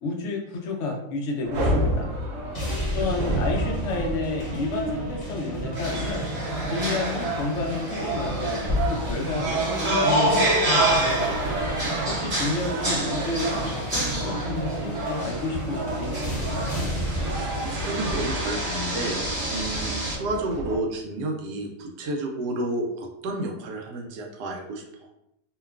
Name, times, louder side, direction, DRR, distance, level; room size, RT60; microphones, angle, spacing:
voice 1, 0.0-2.1 2.9-6.2 6.7-9.6 10.0-11.5 12.1-16.9, left 3 dB, 75° left, 0 dB, 0.6 m, -31 dB
sound 1, 1.4-20.8, right 2 dB, 65° right, 0.8 m, -32 dB
sound 2, 2.5-17.5, right 1 dB, 40° left, 0.7 m, -33 dB
voice 2, 2.6-3.4 12.1-13.0 17.3-24.8, right 2 dB, 85° right, 2 dB, 1.2 m, -32 dB
sound 3, 5.8-20.2, right 1 dB, 45° right, 1.3 m, -28 dB
2.8 x 2.2 x 2.3 m, 0.81 s
omnidirectional pair, 1.7 m